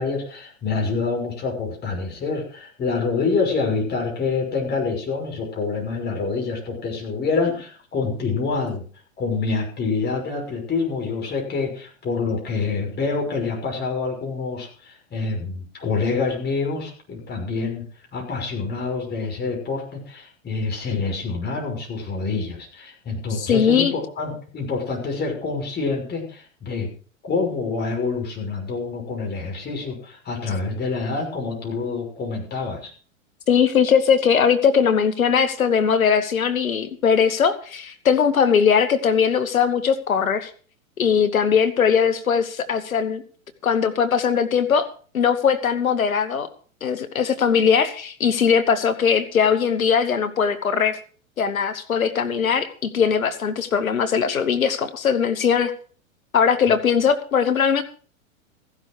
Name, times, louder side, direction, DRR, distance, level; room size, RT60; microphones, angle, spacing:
voice 1, 0.0-8.8 9.2-17.8 18.1-26.9 27.2-32.9, left 4 dB, 25° left, 1 dB, 6.0 m, -26 dB
voice 2, 23.4-23.9 33.5-40.5 41.0-43.2 43.6-44.9 45.1-46.5 46.8-51.0 51.4-55.7 56.3-57.8, left 7 dB, 80° left, 12 dB, 1.9 m, -20 dB
15.0 x 11.5 x 4.8 m, 0.42 s
hypercardioid pair, 105°, 41 cm